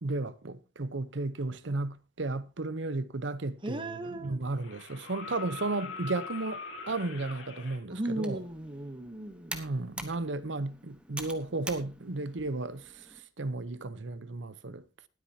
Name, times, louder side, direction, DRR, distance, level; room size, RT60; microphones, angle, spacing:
voice 1, 0.0-8.4 9.5-14.8, right 2 dB, 70° right, 0.8 m, -34 dB
sound 1, 3.5-3.6 4.6-7.8 9.6-9.7, left 4 dB, 75° left, 2.9 m, -42 dB
voice 2, 3.6-4.4 7.9-9.6, right 1 dB, 25° right, 0.9 m, -36 dB
Computer keyboard, 8.0-13.2, right 1 dB, 5° right, 1.2 m, -46 dB
19.5 x 9.0 x 2.8 m
head